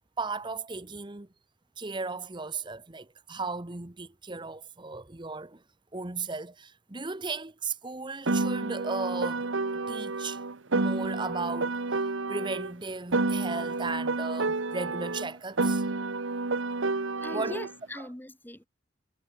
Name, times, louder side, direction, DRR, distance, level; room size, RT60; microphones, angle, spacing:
voice 1, 0.2-1.3 1.8-5.6 5.9-10.4 10.7-15.8 17.3-17.6 18.0-18.1, right 3 dB, 25° right, 1.0 m, -36 dB
Piano, 8.3-12.7 13.1-17.7, right 3 dB, 75° right, 1.2 m, -30 dB
voice 2, 17.2-18.7, left 1 dB, 10° left, 1.2 m, -41 dB
head